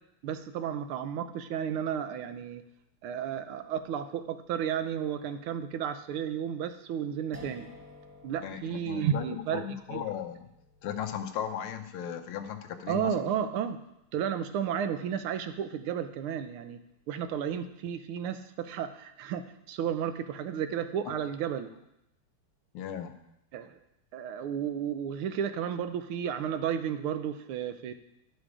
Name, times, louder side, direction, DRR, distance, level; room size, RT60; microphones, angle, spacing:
voice 1, 0.2-2.6 3.0-7.7 8.2-10.0 12.9-13.8 14.1-16.8 17.1-21.7 23.5-23.8 24.1-27.9, right 8 dB, 80° right, 9 dB, 1.6 m, -33 dB
sound 1, 7.3-14.3, left 1 dB, 20° right, 0.4 m, -55 dB
voice 2, 8.4-10.5 10.8-13.3 22.7-23.2, left 9 dB, 80° left, 8 dB, 1.6 m, -37 dB
11.5 x 6.4 x 4.8 m, 0.83 s
omnidirectional pair, 2.4 m